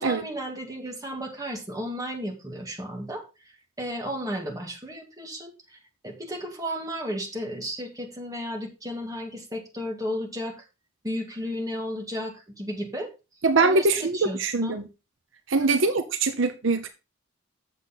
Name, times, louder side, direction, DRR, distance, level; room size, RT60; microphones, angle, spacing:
voice 1, 0.0-3.2 3.8-10.6 11.0-13.1 13.6-14.8 15.6-15.8, equal, 15° right, 1.9 m, -34 dB
voice 2, 13.4-14.8 15.5-16.9, right 3 dB, 65° right, 0.8 m, -23 dB
8.1 x 6.9 x 4.1 m
head